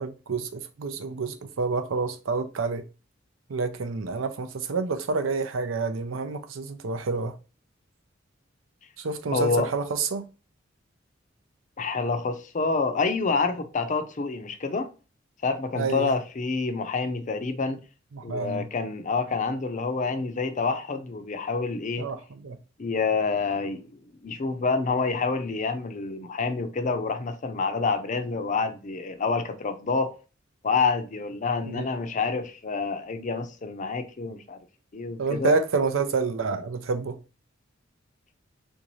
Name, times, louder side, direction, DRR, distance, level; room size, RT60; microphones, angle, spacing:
voice 1, 0.0-2.8 3.5-7.3 9.0-10.2 15.8-16.1 18.1-18.7 22.0-22.6 31.7-31.9 35.2-37.2, right 4 dB, 90° right, 0.6 m, -28 dB
voice 2, 9.3-9.7 11.8-14.9 15.4-17.8 18.2-22.1 22.8-23.8 24.2-30.1 30.6-34.6 34.9-35.6, left 4 dB, 40° left, 0.5 m, -27 dB
3.6 x 2.6 x 3.0 m
head